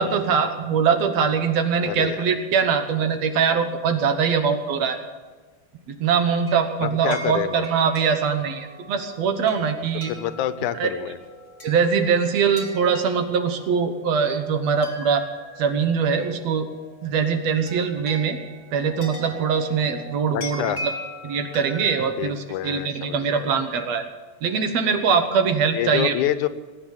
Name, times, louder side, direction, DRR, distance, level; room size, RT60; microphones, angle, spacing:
voice 1, 0.0-5.0 5.9-10.1 10.8-10.9 11.6-15.2 15.6-16.7 17.0-18.4 18.7-20.6 21.2-24.0 24.4-26.1, right 6 dB, 65° right, 7 dB, 2.2 m, -22 dB
voice 2, 1.8-2.2 6.8-7.7 10.1-11.2 20.3-20.8 22.2-23.2 25.7-26.5, left 12 dB, 85° left, 13 dB, 2.2 m, -27 dB
sound 1, 6.1-22.1, left 1 dB, 15° left, 2.4 m, -41 dB
20.5 x 9.0 x 7.3 m, 1.4 s
omnidirectional pair, 3.4 m